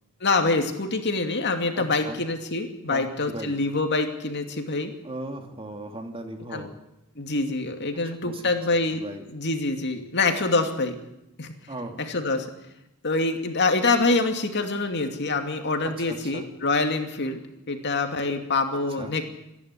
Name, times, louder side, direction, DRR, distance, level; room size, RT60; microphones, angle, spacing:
voice 1, 0.2-4.9 6.5-6.7 7.2-9.0 9.3-11.0 11.4-11.5 12.1-12.5 13.0-17.4 17.7-19.2, left 3 dB, 55° left, 5 dB, 2.5 m, -25 dB
voice 2, 1.8-2.2 2.9-3.6 5.0-6.7 8.0-8.5 9.0-9.2 11.7-12.0 15.8-16.5 19.0-19.2, right 1 dB, 25° right, 5 dB, 2.6 m, -37 dB
27.0 x 11.0 x 9.9 m, 0.87 s
head